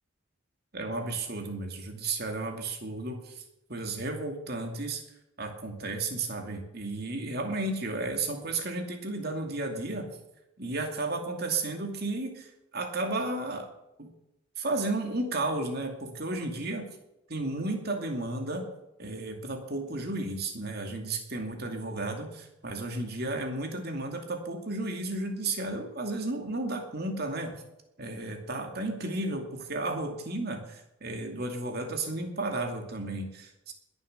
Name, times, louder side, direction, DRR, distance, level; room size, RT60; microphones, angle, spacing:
voice 1, 0.7-3.4 3.7-5.0 5.4-10.1 10.6-13.7 14.0-14.1 14.6-16.9 17.3-18.7 19.0-27.6 28.0-33.7, right 2 dB, 50° right, 4 dB, 2.5 m, -33 dB
21.0 x 7.2 x 6.6 m, 0.88 s
head